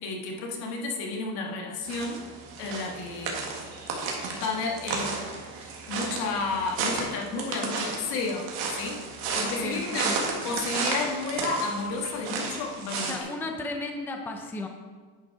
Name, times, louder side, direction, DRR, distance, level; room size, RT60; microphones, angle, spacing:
voice 1, 0.0-2.2 2.6-3.5 4.4-5.2 5.5-8.5 8.7-9.0 9.3-10.2 10.4-13.1, left 3 dB, 70° left, 0 dB, 1.8 m, -32 dB
sound 1, 1.9-13.2, right 4 dB, 70° right, 1.9 m, -33 dB
voice 2, 9.4-10.3 13.0-14.7, left 2 dB, 5° left, 4 dB, 0.5 m, -35 dB
10.0 x 5.5 x 4.7 m, 1.5 s
cardioid pair, 140°, 39 cm